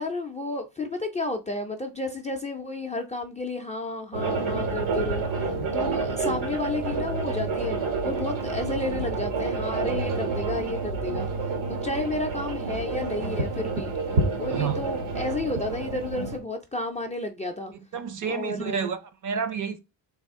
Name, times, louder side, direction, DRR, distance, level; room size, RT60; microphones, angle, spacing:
voice 1, 0.0-5.2 5.7-7.8 8.0-11.3 11.7-13.9 14.4-17.7 18.2-18.9, left 2 dB, 15° left, 0.4 m, -32 dB
sound 1, 4.1-16.4, right 3 dB, 90° right, 1.2 m, -29 dB
voice 2, 14.5-14.8 17.9-19.8, right 6 dB, 40° right, 0.5 m, -30 dB
3.4 x 2.4 x 3.5 m
cardioid pair, 110°, 47 cm